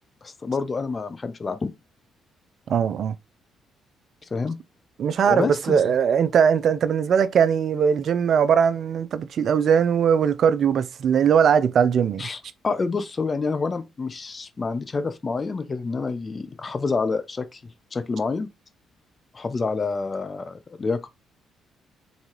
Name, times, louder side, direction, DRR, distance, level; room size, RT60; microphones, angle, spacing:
voice 1, 0.2-1.7 4.2-4.6 5.2-5.9 12.2-17.6 17.9-18.5 19.3-21.1, left 4 dB, 35° left, 0.7 m, -28 dB
voice 2, 2.7-3.2 5.0-12.3, right 7 dB, 60° right, 0.5 m, -20 dB
4.0 x 3.9 x 3.1 m
supercardioid pair, 60°, 0 cm